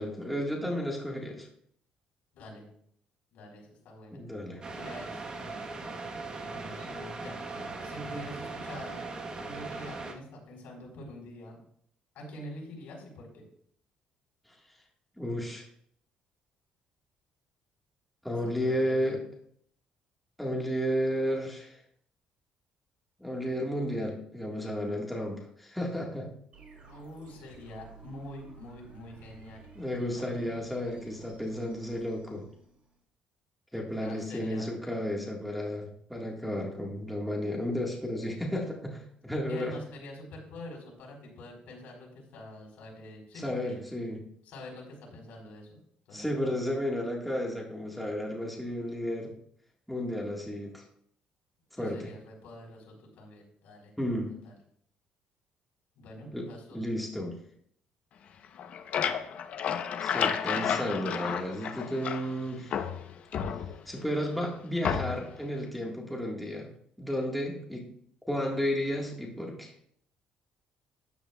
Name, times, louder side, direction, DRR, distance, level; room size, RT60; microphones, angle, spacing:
voice 1, 0.0-1.5 4.1-4.6 15.2-15.7 18.2-19.2 20.4-21.8 23.2-26.3 29.7-32.5 33.7-39.7 43.4-44.2 46.1-49.3 49.9-50.8 51.8-52.1 54.0-54.4 56.3-57.4 60.0-62.8 63.9-66.7 67.0-67.9 68.3-69.7, equal, ahead, -2 dB, 1.6 m, -33 dB
voice 2, 2.3-2.7 3.3-4.2 4.7-5.6 6.5-7.4 7.8-9.1 9.4-11.6 12.1-13.4 18.3-19.2 26.9-29.6 30.0-30.4 34.0-34.7 39.5-43.8 44.4-45.8 46.1-46.6 51.8-53.9 54.4-54.5 56.0-56.8, left 1 dB, 70° left, -1 dB, 4.5 m, -46 dB
sound 1, 4.6-10.1, right 3 dB, 30° right, 1.2 m, -39 dB
sound 2, 26.5-33.0, right 5 dB, 45° right, 3.8 m, -53 dB
sound 3, 58.4-62.4 62.7-64.0 64.8-65.4, left 8 dB, 55° left, 0.8 m, -31 dB
13.0 x 9.9 x 2.3 m, 0.66 s
cardioid pair, 140°, 3 cm